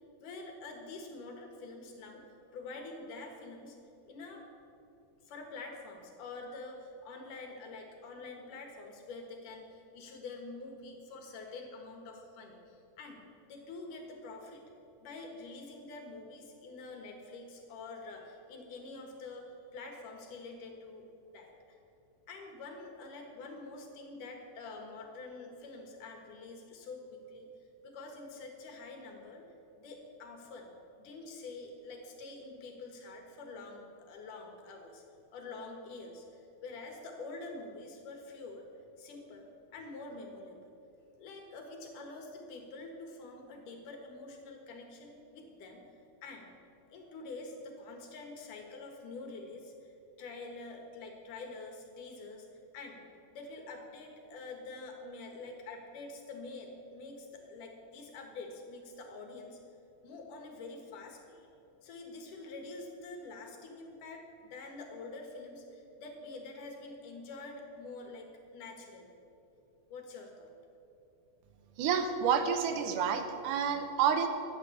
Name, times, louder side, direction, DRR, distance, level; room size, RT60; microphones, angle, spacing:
voice 1, 0.2-2.2 2.5-3.8 4.1-4.4 5.2-13.2 13.5-14.6 15.0-21.0 21.3-21.8 22.3-27.5 27.8-29.4 29.8-30.7 31.0-35.0 35.3-38.7 39.0-40.7 41.2-45.8 46.2-46.5 46.9-52.5 52.7-53.0 53.3-59.6 60.0-61.5 61.8-69.1 69.9-70.5, left 3 dB, 80° left, 2 dB, 3.2 m, -46 dB
voice 2, 71.8-74.3, right 7 dB, 80° right, 7 dB, 2.5 m, -29 dB
12.5 x 9.4 x 7.1 m, 2.8 s
omnidirectional pair, 3.6 m